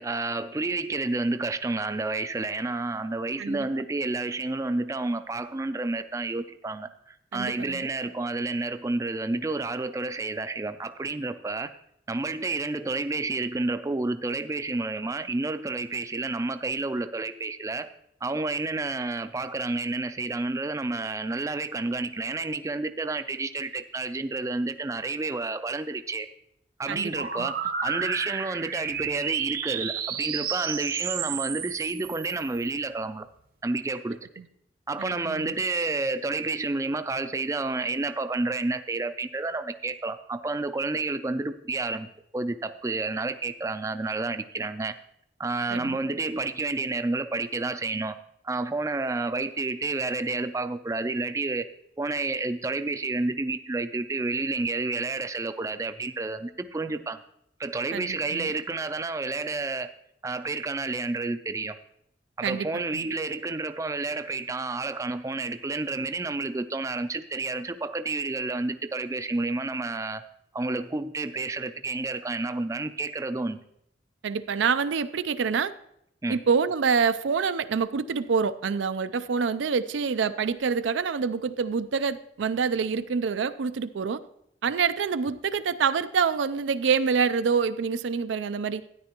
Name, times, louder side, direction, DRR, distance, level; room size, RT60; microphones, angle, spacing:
voice 1, 0.0-11.7 12.1-17.9 18.2-26.3 26.8-27.6 27.8-33.3 33.6-34.2 34.9-42.1 42.3-45.0 45.4-48.2 48.4-51.7 52.0-57.2 57.6-59.9 60.2-61.8 62.4-70.2 70.5-73.6 76.2-76.4, right 3 dB, 15° right, 0.3 m, -30 dB
voice 2, 7.3-7.8 26.9-27.1 27.4-27.5 34.4-34.5 35.0-35.5 45.7-46.0 57.9-58.5 62.4-62.7 62.9-63.1 74.2-75.7 76.3-84.2 84.6-88.8, right 5 dB, 90° right, 0.4 m, -26 dB
sound 1, 27.2-32.7, right 7 dB, 50° right, 0.7 m, -32 dB
13.0 x 9.9 x 2.9 m
head